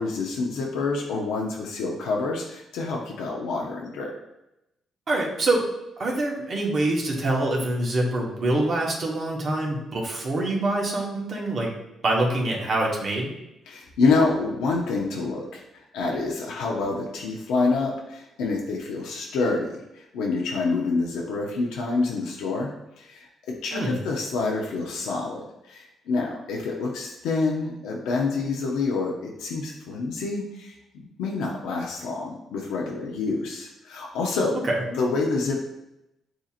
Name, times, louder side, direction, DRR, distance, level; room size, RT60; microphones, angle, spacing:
voice 1, 0.0-4.1 13.7-22.7 23.0-34.6 34.9-35.6, left 3 dB, 90° left, -1 dB, 0.7 m, -27 dB
voice 2, 5.1-5.7 6.0-11.7 12.0-13.3 23.7-24.0 34.6-34.8, right 2 dB, 50° right, -2 dB, 1.3 m, -25 dB
7.6 x 2.8 x 2.5 m, 0.89 s
cardioid pair, 90°, 0 cm